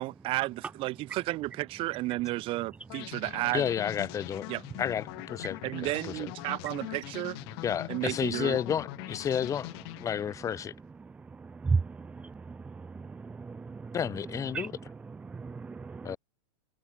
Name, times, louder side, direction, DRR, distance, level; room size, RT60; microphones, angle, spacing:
voice 1, 0.0-3.7 4.5-4.6 5.6-7.4 7.9-8.6, right 19 dB, 30° right, 0.9 m, -32 dB
sound 1, 2.9-10.6, left 28 dB, 45° left, 1.8 m, -42 dB
voice 2, 3.5-4.5 4.8-6.3 7.6-9.7 10.0-10.7 13.9-14.7 16.0-16.2, left 8 dB, 15° left, 1.7 m, -31 dB
voice 3, 11.0-14.0 14.5-16.2, right 4 dB, 5° right, 0.5 m, -35 dB
hypercardioid pair, 145°, 18 cm